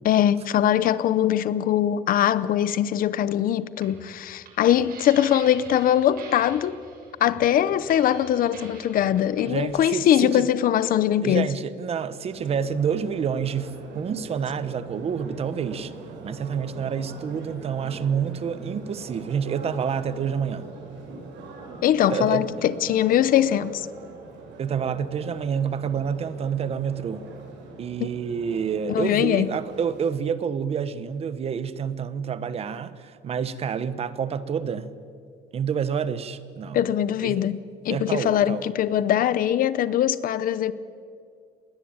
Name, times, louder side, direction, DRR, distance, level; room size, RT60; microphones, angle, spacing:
voice 1, 0.0-6.8 7.2-11.5 21.8-23.9 28.0-28.1 28.9-29.5 36.7-37.6 37.8-40.7, left 11 dB, 50° left, 16 dB, 0.8 m, -22 dB
sound 1, 3.7-9.6, right 4 dB, 55° right, 7.0 m, -45 dB
voice 2, 9.5-10.5 11.2-15.9 16.2-20.7 22.1-22.5 24.6-27.2 27.8-34.9 35.5-36.8 37.2-37.5 37.9-38.7, right 7 dB, 35° right, 14 dB, 1.0 m, -28 dB
sound 2, 12.3-30.1, right 3 dB, 85° right, 7.4 m, -42 dB
28.0 x 21.5 x 8.8 m, 2.3 s
cardioid pair, 170°, 18 cm